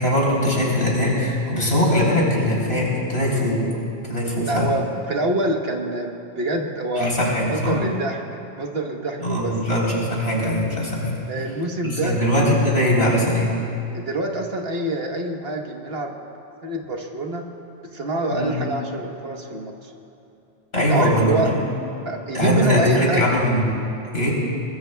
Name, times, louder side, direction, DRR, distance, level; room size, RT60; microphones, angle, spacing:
voice 1, 0.0-3.6 4.0-4.7 7.0-7.8 9.2-11.2 11.8-13.5 18.3-18.6 20.7-21.6 22.3-23.6 24.1-24.3, left 1 dB, 60° left, -4 dB, 3.9 m, -21 dB
voice 2, 4.5-7.1 7.5-8.2 8.5-9.5 11.3-12.2 13.9-16.1 16.6-17.4 17.9-19.9 20.9-21.5 22.0-23.3, right 2 dB, 60° right, 2 dB, 1.3 m, -25 dB
22.5 x 21.0 x 2.2 m, 2.9 s
omnidirectional pair, 1.2 m